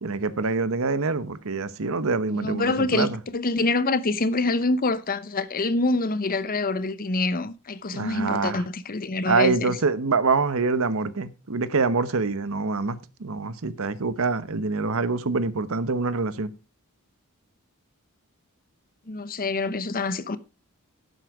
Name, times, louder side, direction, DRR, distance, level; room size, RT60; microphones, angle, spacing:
voice 1, 0.0-3.2 7.9-8.6 9.3-16.5, right 4 dB, 65° right, 0.9 m, -25 dB
voice 2, 2.3-3.1 3.3-9.8 19.1-20.4, left 3 dB, 40° left, 0.8 m, -26 dB
11.5 x 8.1 x 4.7 m
head